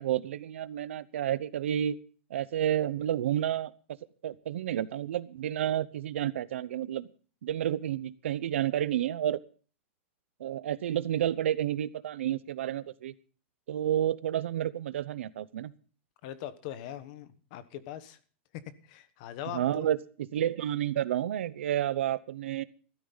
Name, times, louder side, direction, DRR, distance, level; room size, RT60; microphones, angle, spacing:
voice 1, 0.0-2.0 2.3-3.7 4.2-7.1 7.4-9.4 10.4-13.1 13.7-15.7 19.5-22.6, right 11 dB, 85° right, 16 dB, 0.8 m, -30 dB
voice 2, 16.2-18.2 18.5-19.8, left 11 dB, 40° left, 14 dB, 1.1 m, -41 dB
15.5 x 13.0 x 4.0 m, 0.40 s
supercardioid pair, 175°, 6 cm